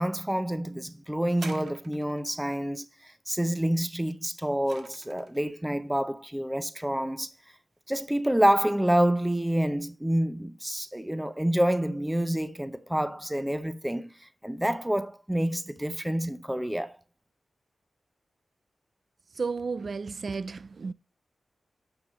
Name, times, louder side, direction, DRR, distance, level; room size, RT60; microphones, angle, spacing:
voice 1, 0.0-7.3 7.9-17.0, right 1 dB, 5° right, 0.6 m, -28 dB
sound 1, 1.3-2.4 4.1-5.4 6.3-6.4, right 4 dB, 75° right, 1.5 m, -45 dB
voice 2, 19.4-20.9, right 4 dB, 50° right, 0.4 m, -33 dB
9.5 x 6.9 x 3.1 m
wide cardioid pair, 120°, 0 cm